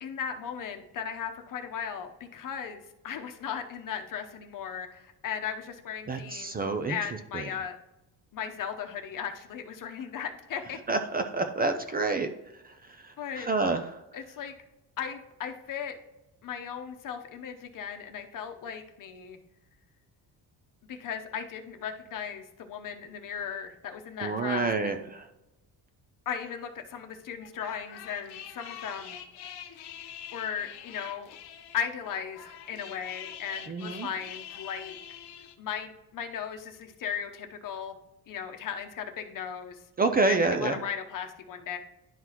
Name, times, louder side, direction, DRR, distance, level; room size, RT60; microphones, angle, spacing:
voice 1, 0.0-6.6 6.9-7.8 8.3-10.8 13.2-13.5 14.1-14.5 15.0-16.0 16.4-19.4 20.9-25.1 26.3-29.2 30.3-31.3 31.7-35.0 35.6-38.0 38.3-39.8 40.3-41.8, left 7 dB, 55° left, 6 dB, 0.9 m, -37 dB
voice 2, 6.1-7.0 7.3-7.4 10.9-12.3 13.0-13.9 24.2-25.3 33.7-34.1 40.0-40.7, right 3 dB, 25° right, 7 dB, 0.4 m, -28 dB
sound 1, 27.4-35.5, left 10 dB, 85° left, 0.8 m, -45 dB
11.0 x 3.9 x 3.0 m, 0.93 s
cardioid pair, 130°, 39 cm